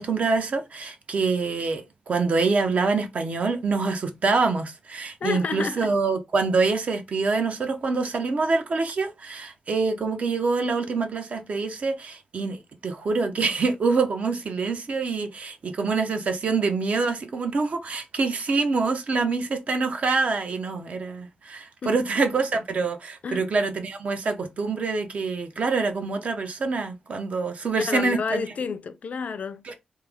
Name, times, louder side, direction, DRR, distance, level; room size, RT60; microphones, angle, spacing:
voice 1, 0.0-28.4 29.6-29.7, right 4 dB, 55° right, 0.6 m, -25 dB
voice 2, 5.2-5.9 21.8-22.0 23.2-23.4 27.8-29.7, left 5 dB, 60° left, 0.4 m, -30 dB
3.1 x 2.0 x 3.4 m
cardioid pair, 80°, 3 cm